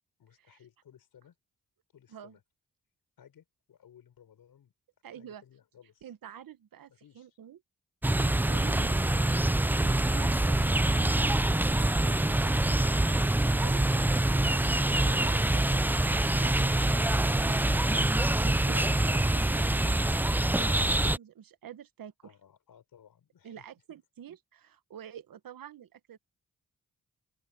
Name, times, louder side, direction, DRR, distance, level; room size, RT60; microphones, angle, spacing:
voice 1, 0.2-1.4 1.9-2.4 3.2-4.7 5.1-6.1 6.9-7.4 22.2-23.7, left 9 dB, 80° left, 5.9 m, -59 dB
voice 2, 5.0-5.4 6.0-7.6 8.2-22.1 23.4-26.2, right 9 dB, 75° right, 1.5 m, -48 dB
sound 1, 8.0-21.2, right 1 dB, 5° right, 0.4 m, -25 dB
open air
supercardioid pair, 45°, 35 cm